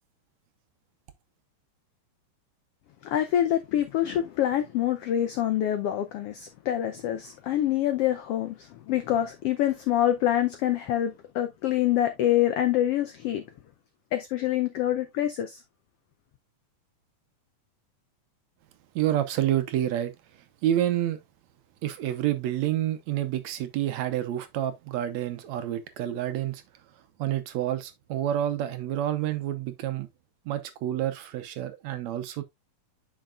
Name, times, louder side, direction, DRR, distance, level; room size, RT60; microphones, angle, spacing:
voice 1, 3.0-13.4 14.1-15.6, left 12 dB, 85° left, 1.3 m, -26 dB
voice 2, 19.0-20.1 20.6-21.2 21.8-26.6 27.2-30.1 30.5-32.4, right 12 dB, 70° right, 1.9 m, -28 dB
9.1 x 5.7 x 2.4 m
omnidirectional pair, 3.5 m